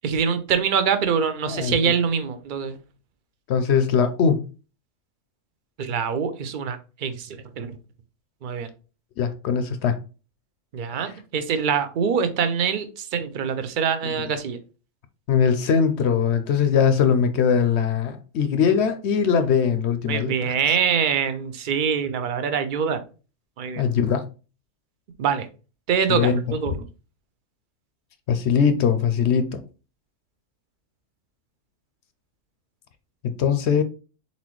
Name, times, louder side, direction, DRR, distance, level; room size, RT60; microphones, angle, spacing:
voice 1, 0.0-2.8 5.8-7.8 8.4-8.7 10.7-14.6 20.1-23.0 23.6-23.8 25.2-25.5 25.9-26.8, right 7 dB, 50° right, 0.6 m, -24 dB
voice 2, 3.5-4.5 9.2-10.0 15.3-20.4 23.8-24.3 26.1-26.4 28.3-29.6 33.2-33.8, left 7 dB, 65° left, 0.8 m, -21 dB
4.1 x 4.1 x 3.0 m
omnidirectional pair, 1.3 m